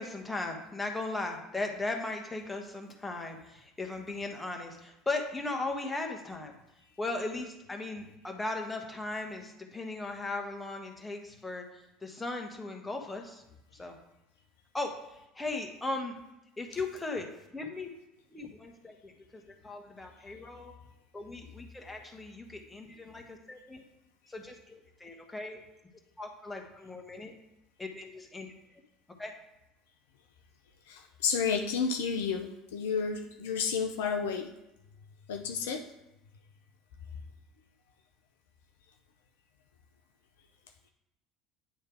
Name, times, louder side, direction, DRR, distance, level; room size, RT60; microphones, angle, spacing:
voice 1, 0.0-6.5 7.0-11.6 12.0-13.4 13.8-14.0 14.7-14.9 15.3-16.1 16.6-17.9 18.3-20.7 21.1-23.8 24.3-25.6 26.2-27.3 27.8-28.5 29.2-29.3, left 2 dB, 15° left, 3 dB, 1.2 m, -37 dB
voice 2, 30.9-34.5 35.3-35.9, left 6 dB, 70° left, 4 dB, 0.5 m, -31 dB
9.4 x 3.2 x 4.7 m, 0.91 s
figure-of-eight pair, 65°, 0 cm